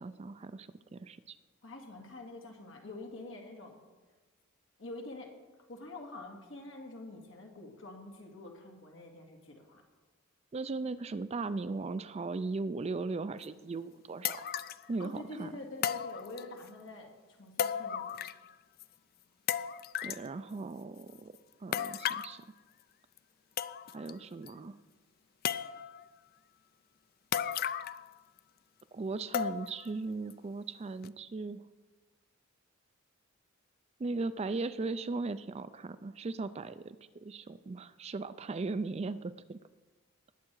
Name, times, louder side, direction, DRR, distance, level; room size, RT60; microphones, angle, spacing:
voice 1, 0.0-1.4 10.5-14.5 14.9-15.5 20.0-21.3 21.6-22.4 23.9-24.8 28.9-31.6 34.0-39.6, right 3 dB, 30° right, 13 dB, 0.4 m, -38 dB
voice 2, 1.6-3.8 4.8-5.3 5.7-9.8 15.0-18.2, left 2 dB, 65° left, 2 dB, 2.2 m, -46 dB
sound 1, 13.4-13.5 14.2-14.9 15.8-16.7 17.6-18.5 18.8-18.9 19.5-20.3 21.7-22.4 23.2-23.3 23.6-24.1 24.5-24.6 25.4-26.0 27.3-28.1 28.4-28.5 29.3-29.9 30.3-30.4 31.0-31.1, left 9 dB, 45° left, 0.4 m, -35 dB
19.5 x 7.6 x 4.7 m, 1.2 s
head